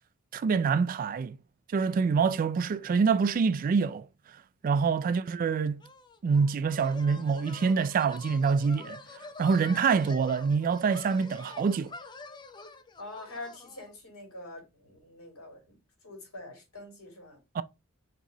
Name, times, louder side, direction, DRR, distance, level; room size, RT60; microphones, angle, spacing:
voice 1, 0.3-1.4 1.7-4.1 4.6-5.8 6.2-9.0 9.4-11.9 17.5-17.6, right 5 dB, 40° right, 0.3 m, -26 dB
sound 1, 5.8-13.9, left 3 dB, 20° left, 0.5 m, -46 dB
voice 2, 13.0-15.8 16.0-17.4, left 2 dB, 85° left, 2.6 m, -45 dB
4.5 x 3.0 x 3.8 m
head